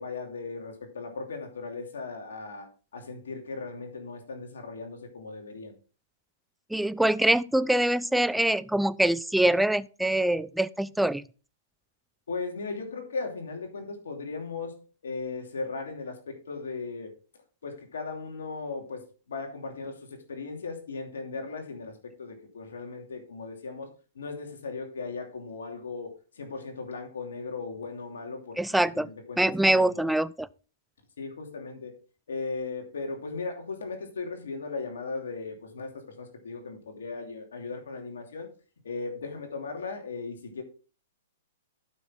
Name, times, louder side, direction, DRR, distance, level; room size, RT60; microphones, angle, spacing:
voice 1, 0.0-5.7 12.3-14.8 15.0-17.1 17.6-23.9 24.1-28.6 28.9-30.1 31.2-31.9 32.3-38.5 38.8-40.6, left 4 dB, 80° left, 2.8 m, -37 dB
voice 2, 6.7-11.2 28.6-29.1 29.4-30.5, right 1 dB, ahead, 0.4 m, -24 dB
12.0 x 6.1 x 3.8 m
hypercardioid pair, 130°, 0 cm